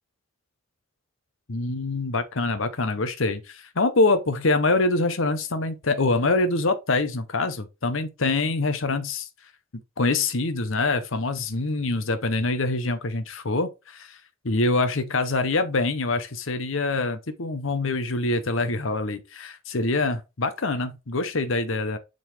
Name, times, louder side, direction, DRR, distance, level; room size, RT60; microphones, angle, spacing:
voice 1, 1.5-9.3 10.0-14.2 14.4-22.0, left 3 dB, 75° left, 0.9 m, -25 dB
7.5 x 3.9 x 3.4 m
head